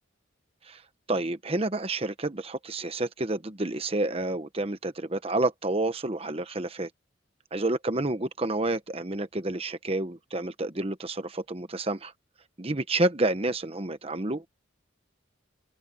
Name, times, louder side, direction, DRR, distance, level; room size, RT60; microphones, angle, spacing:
voice 1, 1.1-6.9 7.5-12.1 12.6-14.5, right 2 dB, 30° right, 1.1 m, -29 dB
open air
head